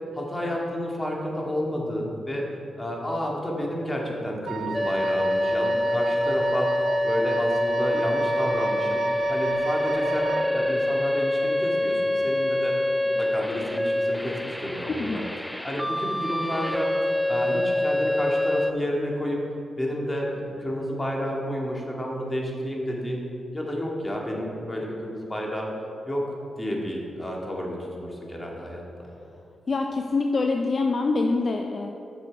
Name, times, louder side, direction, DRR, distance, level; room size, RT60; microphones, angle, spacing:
voice 1, 0.1-2.5 2.8-6.7 7.0-9.0 9.3-12.8 13.2-15.2 15.6-16.9 17.3-19.4 19.8-23.2 23.5-25.7 26.1-26.2 26.6-29.1, equal, 20° left, -2 dB, 2.1 m, -30 dB
Wind instrument woodwind instrument, 4.5-10.6, right 7 dB, 85° right, 0.3 m, -34 dB
sound 1, 4.7-18.7, left 1 dB, 5° left, 0.3 m, -25 dB
voice 2, 14.9-15.2 29.7-31.9, left 3 dB, 50° left, 3 dB, 0.6 m, -25 dB
10.0 x 6.4 x 4.6 m, 2.7 s
cardioid pair, 60°, 0 cm